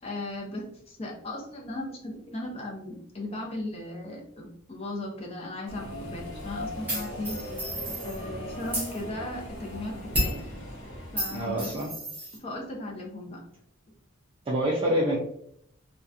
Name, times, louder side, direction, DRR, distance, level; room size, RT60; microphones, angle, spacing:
voice 1, 0.0-7.4 8.0-10.4 11.1-11.8 12.4-13.4, left 1 dB, 30° left, 0 dB, 0.6 m, -37 dB
Subway metro underground, 5.7-11.9, equal, 65° left, 0.9 m, -39 dB
sound 1, 6.9-8.2 8.6-8.9 10.1-10.4 11.2-12.4, right 1 dB, 10° right, 0.8 m, -31 dB
voice 2, 11.3-11.9 14.5-15.2, equal, 25° right, -4 dB, 0.4 m, -26 dB
2.7 x 2.2 x 2.4 m, 0.70 s
head